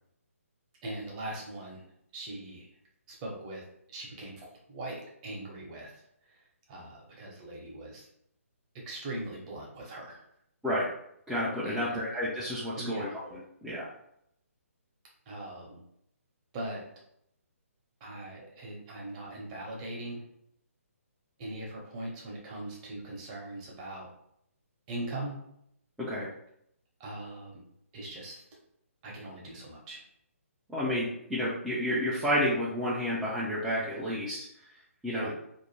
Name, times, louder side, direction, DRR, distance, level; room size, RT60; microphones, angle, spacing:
voice 1, 0.8-1.8 2.1-2.7 3.1-3.6 3.9-5.9 6.3-8.1 8.7-10.2 11.6-12.1 12.8-13.1 15.3-15.8 16.5-16.9 18.0-20.2 21.4-24.1 24.9-25.4 27.0-27.6 27.9-28.4 29.0-30.0 35.1-35.3, right 1 dB, 30° right, -2 dB, 0.8 m, -40 dB
voice 2, 11.3-13.9 26.0-26.3 30.7-34.4 35.0-35.3, equal, 5° right, -10 dB, 0.4 m, -30 dB
2.6 x 2.1 x 3.1 m, 0.73 s
figure-of-eight pair, 145°, 8 cm